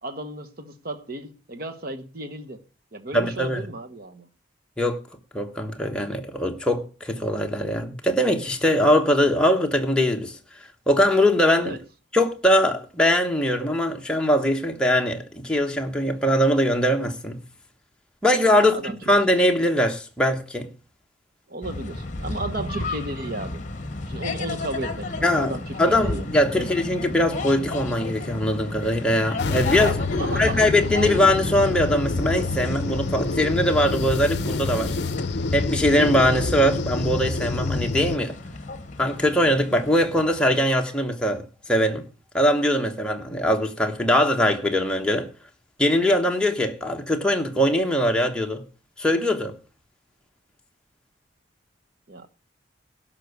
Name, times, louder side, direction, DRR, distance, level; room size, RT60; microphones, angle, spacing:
voice 1, 0.0-2.6 2.9-4.3 11.6-11.8 18.5-19.0 21.5-23.6 24.1-26.2 26.5-26.7 29.8-30.6 52.1-52.3, right 2 dB, 50° right, 1.1 m, -34 dB
voice 2, 3.1-3.6 4.8-5.0 5.3-10.3 10.9-11.8 12.1-17.4 18.2-20.7 25.2-25.5 25.8-35.0 35.5-38.4 39.0-41.4 41.7-42.0 42.3-45.3 45.8-48.6 49.0-49.5, left 1 dB, 5° left, 1.1 m, -21 dB
sound 1, 21.6-40.4, left 2 dB, 40° left, 1.2 m, -33 dB
sound 2, 29.4-38.2, left 3 dB, 55° left, 0.6 m, -27 dB
12.0 x 5.8 x 8.1 m
head